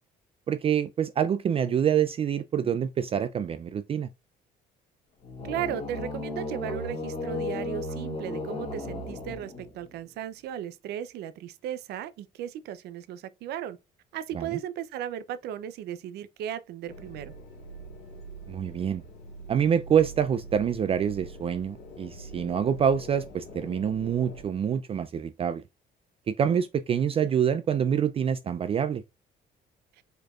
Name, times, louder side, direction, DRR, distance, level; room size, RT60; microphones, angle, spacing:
voice 1, 0.5-4.1 14.3-14.6 18.5-19.0 19.5-25.6 26.3-29.0, right 8 dB, 35° right, 0.4 m, -26 dB
sound 1, 5.2-9.9, left 2 dB, 35° left, 1.9 m, -35 dB
voice 2, 5.4-13.8 14.1-17.3, right 10 dB, 75° right, 0.6 m, -36 dB
sound 2, 16.9-24.4, right 2 dB, 80° left, 1.6 m, -44 dB
4.8 x 4.5 x 2.4 m
cardioid pair, 110°, 17 cm